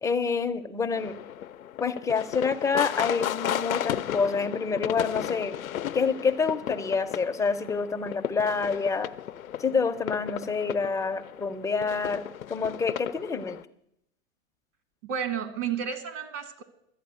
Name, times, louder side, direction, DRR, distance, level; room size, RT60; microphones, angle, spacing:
voice 1, 0.0-1.2 1.8-5.6 5.9-9.1 9.6-12.2 12.5-13.6, left 5 dB, 10° left, 6 dB, 0.5 m, -27 dB
sound 1, 1.0-13.6, left 11 dB, 85° left, 0.6 m, -34 dB
voice 2, 15.0-16.6, right 8 dB, 70° right, 9 dB, 1.8 m, -31 dB
12.5 x 8.7 x 6.8 m, 0.80 s
hypercardioid pair, 100°, 40 cm